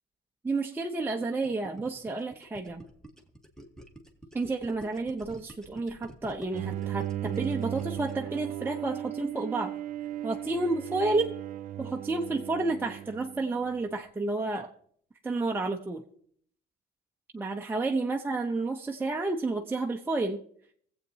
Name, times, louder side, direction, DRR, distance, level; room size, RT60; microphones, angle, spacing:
voice 1, 0.4-2.8 4.3-9.7 10.2-11.3 11.8-14.7 15.2-16.0 17.3-20.4, right 3 dB, 10° right, 1 dB, 0.7 m, -30 dB
Gurgling, 1.2-8.3, right 1 dB, 5° left, 1.3 m, -49 dB
Bowed string instrument, 6.5-13.8, right 12 dB, 55° right, 0.4 m, -36 dB
23.0 x 7.9 x 2.8 m, 0.62 s
cardioid pair, 110°, 17 cm